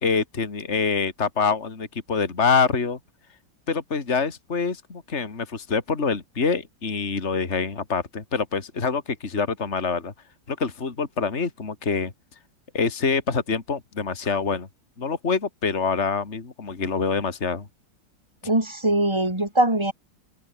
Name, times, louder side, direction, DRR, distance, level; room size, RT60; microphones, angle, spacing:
voice 1, 0.0-3.0 3.7-10.1 10.5-12.1 12.7-14.7 15.0-17.7, left 5 dB, 40° left, 2.8 m, -25 dB
voice 2, 18.4-19.9, right 1 dB, 15° right, 3.8 m, -22 dB
open air
omnidirectional pair, 2.0 m